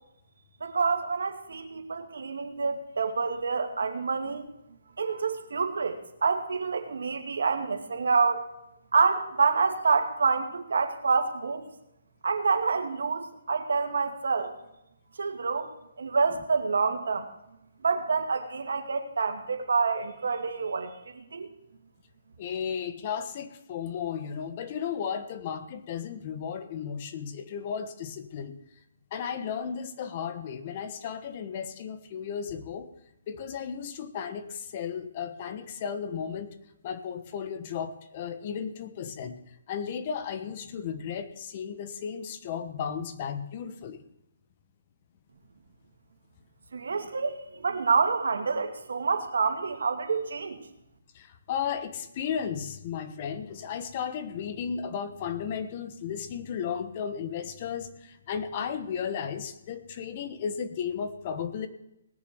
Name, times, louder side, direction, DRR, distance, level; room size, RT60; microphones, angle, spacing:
voice 1, 0.6-4.5 5.0-8.4 8.9-11.6 12.2-14.5 15.2-15.7 16.0-17.3 17.8-21.5 46.7-50.6, right 4 dB, 75° right, 6 dB, 2.3 m, -27 dB
voice 2, 22.4-28.6 29.1-32.9 33.3-36.5 36.8-39.4 39.7-44.0 51.1-61.7, left 7 dB, 35° left, 10 dB, 1.2 m, -34 dB
19.0 x 7.0 x 6.9 m, 0.85 s
hypercardioid pair, 165°, 0 cm